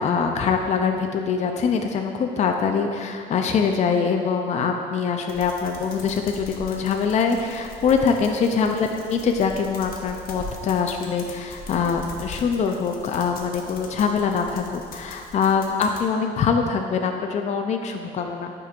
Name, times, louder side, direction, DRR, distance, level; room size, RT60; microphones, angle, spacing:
voice 1, 0.0-18.5, left 6 dB, 45° left, 4 dB, 0.5 m, -23 dB
sound 1, 5.3-16.0, left 3 dB, 60° left, 0.8 m, -41 dB
8.2 x 5.2 x 2.5 m, 2.2 s
cardioid pair, 110°, 17 cm